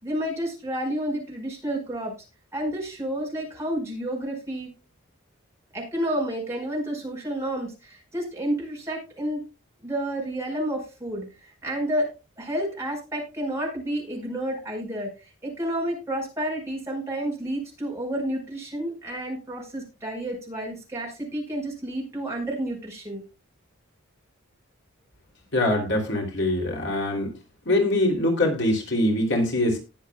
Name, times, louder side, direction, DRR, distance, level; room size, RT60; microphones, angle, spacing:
voice 1, 0.0-2.1 2.5-4.7 5.7-9.4 9.8-12.1 12.4-23.2, right 1 dB, 15° right, -1 dB, 5.0 m, -30 dB
voice 2, 25.5-27.3 27.7-29.8, left 1 dB, 55° left, 1 dB, 3.0 m, -23 dB
19.5 x 7.4 x 2.3 m, 0.29 s
head